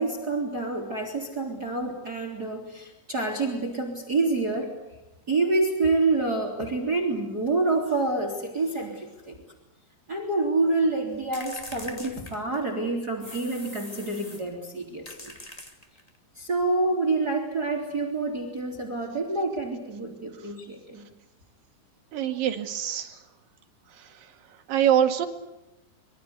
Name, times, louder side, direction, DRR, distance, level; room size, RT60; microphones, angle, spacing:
voice 1, 0.0-4.7 5.3-9.4 10.1-15.3 16.4-21.1, right 3 dB, 25° right, 4 dB, 3.4 m, -27 dB
sound 1, 11.3-12.8 13.2-14.5 15.0-16.2, left 1 dB, 20° left, 1.0 m, -43 dB
voice 2, 22.1-23.2 24.0-24.1 24.7-25.3, right 10 dB, 60° right, 6 dB, 3.3 m, -24 dB
26.0 x 23.5 x 8.2 m, 0.96 s
omnidirectional pair, 5.2 m